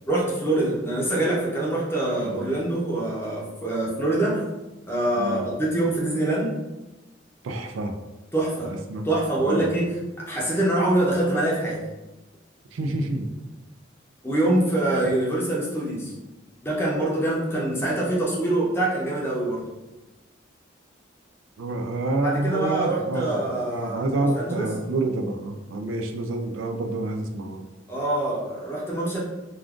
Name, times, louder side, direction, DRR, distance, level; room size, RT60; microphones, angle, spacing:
voice 1, 0.1-4.4 4.9-6.6 8.3-8.8 9.0-11.8 14.2-16.1 16.6-19.6 22.2-24.7 27.9-29.2, right 1 dB, 10° left, -5 dB, 0.6 m, -25 dB
voice 2, 2.2-2.5 5.1-5.4 7.4-8.0 8.6-9.1 9.4-9.7 12.7-13.3 21.6-27.6, right 2 dB, 85° right, 4 dB, 0.4 m, -28 dB
2.5 x 2.3 x 3.5 m, 1.1 s
head